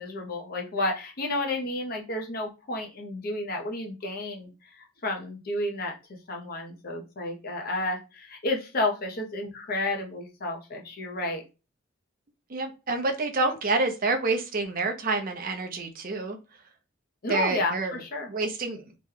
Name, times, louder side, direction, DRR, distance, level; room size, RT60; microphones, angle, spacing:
voice 1, 0.0-4.5 5.0-5.9 6.3-11.4 17.2-18.3, left 2 dB, 45° left, 1 dB, 0.6 m, -31 dB
voice 2, 12.5-16.4 17.3-18.0 18.3-18.8, right 3 dB, 45° right, 5 dB, 0.6 m, -28 dB
2.9 x 2.2 x 3.5 m, 0.30 s
head